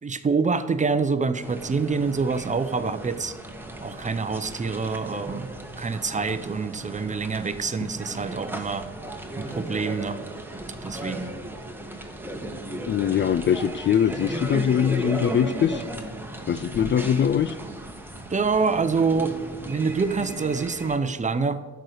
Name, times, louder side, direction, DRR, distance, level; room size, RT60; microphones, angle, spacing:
voice 1, 0.0-3.3 3.8-5.5 5.8-8.9 9.4-10.2 10.8-11.3 18.3-19.4 19.6-21.6, right 4 dB, 25° right, 11 dB, 0.7 m, -26 dB
sound 1, 1.4-21.0, right 1 dB, 5° right, 1.3 m, -36 dB
voice 2, 12.9-15.8 16.5-17.5, left 8 dB, 40° left, 14 dB, 0.4 m, -22 dB
11.0 x 4.6 x 8.0 m, 1.4 s
cardioid pair, 90°, 30 cm